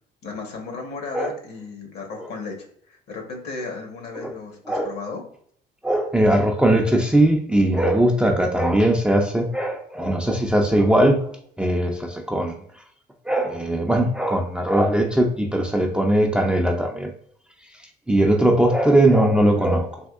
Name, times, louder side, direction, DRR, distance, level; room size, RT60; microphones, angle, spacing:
voice 1, 0.2-5.2, left 4 dB, 70° left, 2 dB, 1.1 m, -35 dB
voice 2, 5.8-12.6 13.3-17.1 18.1-19.9, right 1 dB, 5° right, 2 dB, 0.4 m, -20 dB
3.5 x 2.7 x 2.3 m, 0.64 s
cardioid pair, 110°, 17 cm